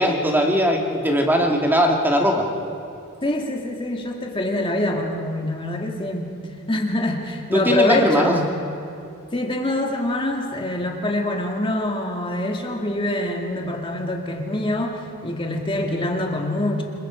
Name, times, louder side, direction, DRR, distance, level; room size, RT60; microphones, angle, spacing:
voice 1, 0.0-2.5 7.5-8.3, equal, 10° right, 1 dB, 2.0 m, -19 dB
voice 2, 3.2-6.3 6.7-8.5 9.3-16.8, left 1 dB, 25° left, 2 dB, 2.0 m, -25 dB
26.5 x 22.5 x 5.0 m, 2.5 s
head